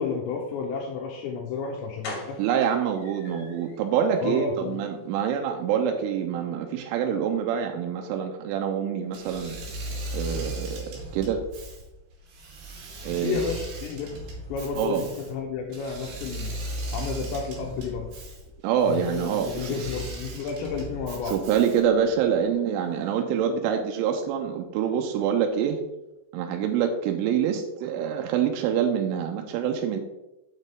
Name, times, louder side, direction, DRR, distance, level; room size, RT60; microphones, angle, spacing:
voice 1, 0.0-2.4 4.2-4.8 13.1-14.2 14.5-16.5 16.9-18.1 18.8-21.4, left 5 dB, 80° left, 1 dB, 2.7 m, -31 dB
sound 1, 1.4-1.5 2.0-3.8 4.2-4.3 4.6-4.8 5.0-5.1, left 2 dB, 60° left, 4.0 m, -41 dB
voice 2, 2.4-9.6 10.1-11.4 13.0-13.4 14.8-15.0 18.6-19.9 21.3-25.8 26.3-30.0, right 8 dB, 85° right, 3 dB, 3.1 m, -26 dB
Engine / Mechanisms, 9.1-22.0, right 1 dB, 65° right, 3.8 m, -37 dB
8.0 x 6.7 x 3.5 m, 0.98 s
omnidirectional pair, 5.7 m